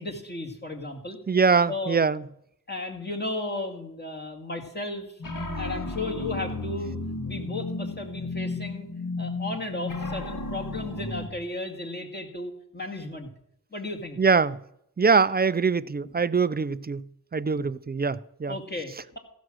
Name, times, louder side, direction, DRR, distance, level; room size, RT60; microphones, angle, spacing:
voice 1, 0.0-1.2 1.7-2.0 2.7-5.2 5.6-7.0 7.2-8.9 9.2-13.3 13.7-14.2 17.5-17.7 18.5-19.2, left 2 dB, 25° left, 2.2 m, -34 dB
voice 2, 1.3-2.2 14.2-14.6 15.0-17.0 17.3-18.5, right 5 dB, 25° right, 0.4 m, -23 dB
sound 1, 5.2-11.3, left 3 dB, 55° left, 2.0 m, -33 dB
15.5 x 6.2 x 6.2 m
cardioid pair, 60°, 39 cm